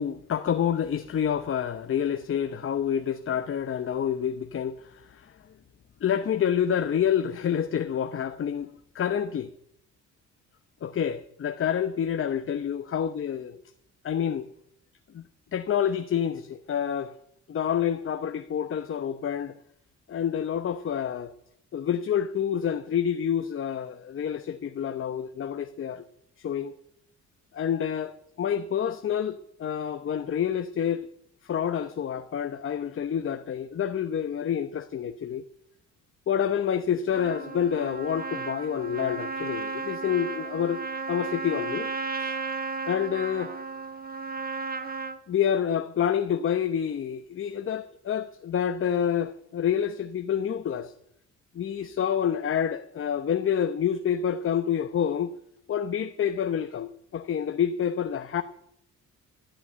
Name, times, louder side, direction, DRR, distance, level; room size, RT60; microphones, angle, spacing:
voice 1, 0.0-5.3 6.0-9.5 10.8-13.6 14.0-14.5 15.1-15.2 15.5-17.1 17.5-19.5 20.1-21.3 21.7-26.0 26.4-26.7 27.5-31.1 31.4-35.4 36.3-40.8 41.1-41.9 42.2-42.4 42.9-43.5 45.3-50.9 51.5-55.4 55.7-58.4, left 8 dB, 45° left, 0.8 m, -28 dB
Trumpet, 37.1-45.2, right 4 dB, 30° right, 1.3 m, -34 dB
13.5 x 8.9 x 8.6 m
cardioid pair, 90°, 30 cm